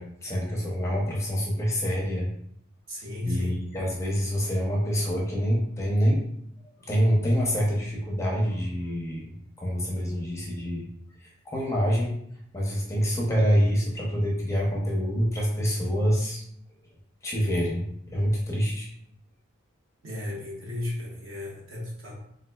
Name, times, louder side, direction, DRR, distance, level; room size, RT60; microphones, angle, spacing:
voice 1, 0.0-2.3 3.2-6.2 6.8-9.3 9.6-10.9 11.5-12.2 12.5-16.4 17.2-18.9, equal, 15° left, -3 dB, 0.5 m, -26 dB
voice 2, 2.9-3.7 20.0-22.1, left 1 dB, 65° right, -5 dB, 1.2 m, -34 dB
4.1 x 2.4 x 2.2 m, 0.72 s
head